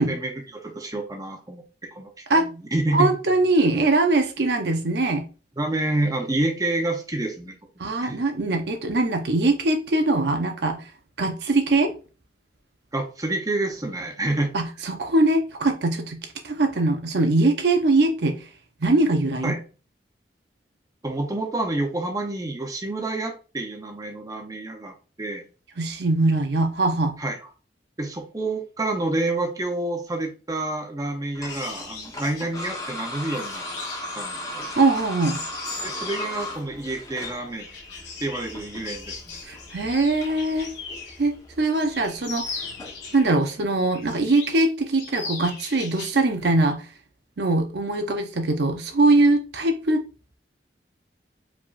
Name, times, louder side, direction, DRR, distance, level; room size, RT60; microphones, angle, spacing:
voice 1, 0.0-1.6 1.9-3.1 5.6-7.5 8.0-8.2 12.9-14.5 19.4-19.6 21.0-25.4 27.2-27.4 28.0-33.6 34.2-34.6 35.8-37.7 38.2-39.4, right 2 dB, 20° right, 3 dB, 0.7 m, -28 dB
voice 2, 2.9-5.2 7.8-10.9 11.2-11.9 14.5-18.5 18.8-19.6 25.8-27.2 34.8-35.4 39.5-40.7 41.2-42.4 43.1-46.8 47.4-50.0, right 2 dB, 65° right, 5 dB, 0.7 m, -22 dB
sound 1, 31.4-43.2, left 1 dB, 20° left, 1.0 m, -38 dB
sound 2, 31.5-41.3 41.6-43.5 43.9-44.7 45.0-46.2 46.5-46.7, left 4 dB, 85° left, 1.8 m, -39 dB
4.9 x 3.5 x 2.5 m, 0.34 s
head